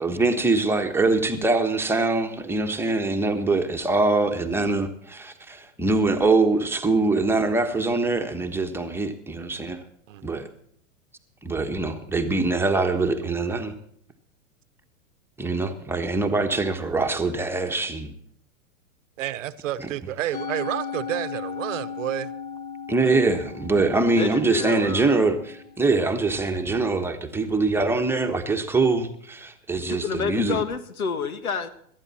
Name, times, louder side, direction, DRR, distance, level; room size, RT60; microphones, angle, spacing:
voice 1, 0.0-9.8 10.2-10.4 11.4-13.7 15.4-18.1 22.9-30.6, right 3 dB, 5° right, 1.2 m, -23 dB
voice 2, 10.1-10.4 19.2-22.3, right 13 dB, 65° right, 1.0 m, -30 dB
Musical instrument, 20.3-26.7, left 6 dB, 15° left, 0.7 m, -37 dB
voice 3, 23.0-23.5 24.0-25.2 29.9-31.7, left 5 dB, 90° left, 1.6 m, -30 dB
18.0 x 12.5 x 4.2 m
hypercardioid pair, 125°, 41 cm